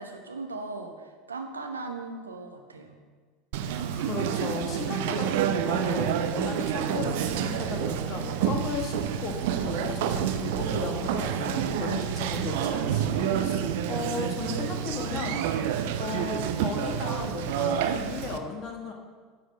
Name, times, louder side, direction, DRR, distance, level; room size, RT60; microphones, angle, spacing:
voice 1, 0.0-3.0 11.8-12.2, right 3 dB, 80° right, 4 dB, 0.9 m, -38 dB
Conversation, 3.5-18.4, right 9 dB, 60° right, 0.5 m, -28 dB
voice 2, 3.6-13.6 13.9-15.4 16.0-18.9, left 5 dB, 40° left, 2 dB, 1.5 m, -35 dB
9.4 x 4.4 x 6.5 m, 1.5 s
figure-of-eight pair, 75°, 0 cm